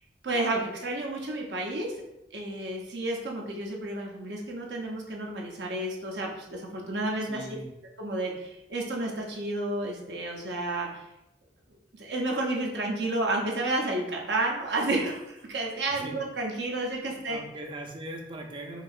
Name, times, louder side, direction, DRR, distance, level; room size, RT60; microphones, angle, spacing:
voice 1, 0.2-1.9 2.3-7.5 8.0-11.0 12.0-17.4, right 2 dB, 70° right, 0 dB, 0.7 m, -31 dB
voice 2, 7.2-7.7 15.9-16.2 17.1-18.8, right 1 dB, 30° right, 2 dB, 0.5 m, -40 dB
4.7 x 2.8 x 2.4 m, 0.90 s
head